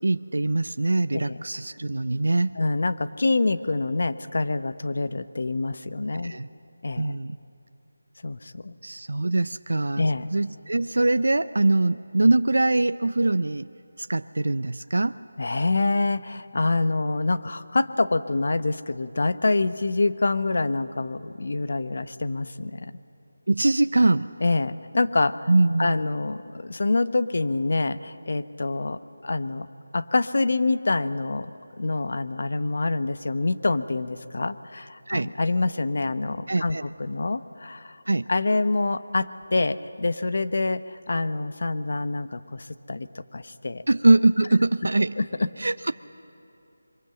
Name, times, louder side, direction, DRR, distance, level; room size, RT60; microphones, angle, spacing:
voice 1, 0.0-2.6 6.2-6.5 7.0-7.4 8.8-10.0 10.3-13.7 14.0-15.1 23.5-24.3 25.5-25.9 35.1-35.3 36.5-36.9 38.1-38.3 43.9-45.2 45.6-45.9, right 2 dB, 75° right, 12 dB, 0.5 m, -22 dB
voice 2, 2.6-6.3 6.8-7.1 8.2-8.7 10.0-10.3 15.4-22.9 24.4-25.5 25.8-29.7 29.9-31.5 31.8-38.0 38.3-43.8 45.2-45.5, left 3 dB, 55° left, 12 dB, 0.9 m, -26 dB
25.5 x 23.5 x 7.8 m, 2.9 s
figure-of-eight pair, 170°, 0 cm